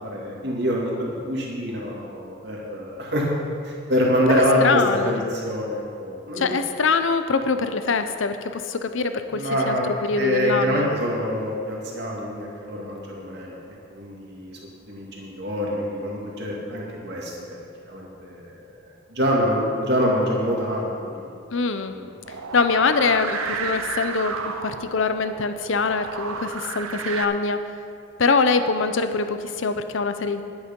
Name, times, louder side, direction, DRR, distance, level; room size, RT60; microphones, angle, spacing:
voice 1, 0.0-3.3 3.7-6.6 9.3-9.8 10.2-14.6 14.9-17.6 17.9-18.4 18.8-18.9 19.1-21.2 21.8-22.2, equal, 50° right, -3 dB, 2.3 m, -25 dB
voice 2, 4.3-5.2 6.3-10.9 21.5-21.9 22.5-27.6 28.2-30.4, left 4 dB, 65° left, 9 dB, 0.7 m, -23 dB
sound 1, 22.3-27.3, right 5 dB, 85° right, 0.7 m, -32 dB
11.0 x 9.8 x 5.4 m, 2.4 s
head